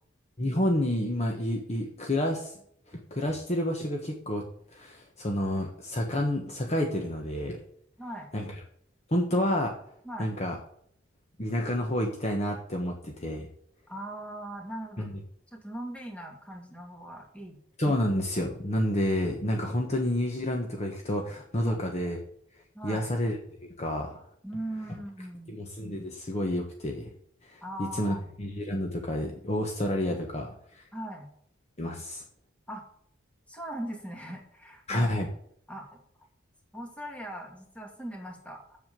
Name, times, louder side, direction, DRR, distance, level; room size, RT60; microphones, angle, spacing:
voice 1, 0.4-2.5 2.9-4.4 4.7-7.6 8.3-8.4 9.1-9.7 10.2-10.6 11.4-13.5 15.0-15.1 17.8-22.2 22.8-23.4 23.8-24.2 25.5-27.1 27.5-30.8 31.8-32.2 34.9-35.3, left 1 dB, 35° left, 2 dB, 1.3 m, -29 dB
voice 2, 8.0-8.3 10.0-10.3 13.9-15.1 15.5-17.6 21.6-21.8 22.7-23.1 24.4-25.6 27.6-28.2 30.1-30.2 30.9-31.3 32.7-32.8 33.5-35.1 35.7-36.0 36.7-38.8, right 1 dB, 5° left, 1 dB, 2.3 m, -40 dB
7.9 x 7.3 x 7.5 m, 0.67 s
head